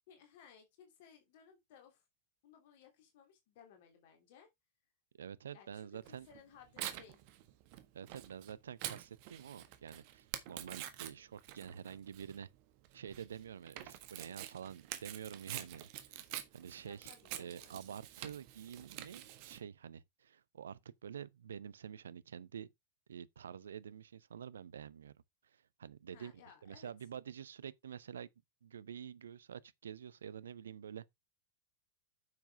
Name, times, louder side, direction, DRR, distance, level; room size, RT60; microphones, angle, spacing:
voice 1, 0.1-2.0 2.4-4.5 5.5-7.2 16.8-17.8 26.1-26.9, left 7 dB, 50° left, 3.2 m, -60 dB
voice 2, 5.2-6.3 7.9-12.5 12.9-16.2 16.5-17.1 17.4-22.7 23.1-25.1 25.4-26.3 26.6-28.3 28.6-31.0, right 8 dB, 65° right, 0.7 m, -48 dB
Tearing, 6.0-19.6, right 13 dB, 45° right, 1.6 m, -47 dB
9.4 x 7.1 x 3.6 m
figure-of-eight pair, 90°, 0 cm